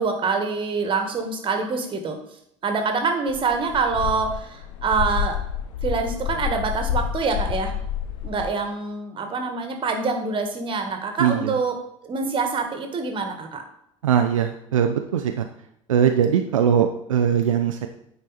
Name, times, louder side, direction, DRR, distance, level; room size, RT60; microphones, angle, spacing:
voice 1, 0.0-2.2 2.6-5.4 5.8-7.7 8.2-11.8 12.0-13.6, right 4 dB, 30° right, 5 dB, 1.6 m, -25 dB
sound 1, 3.3-8.5, left 9 dB, 60° left, 1.1 m, -29 dB
voice 2, 11.2-11.6 14.0-15.5 15.9-17.9, right 8 dB, 70° right, 5 dB, 0.6 m, -21 dB
9.6 x 4.6 x 4.2 m, 0.75 s
figure-of-eight pair, 70°, 17 cm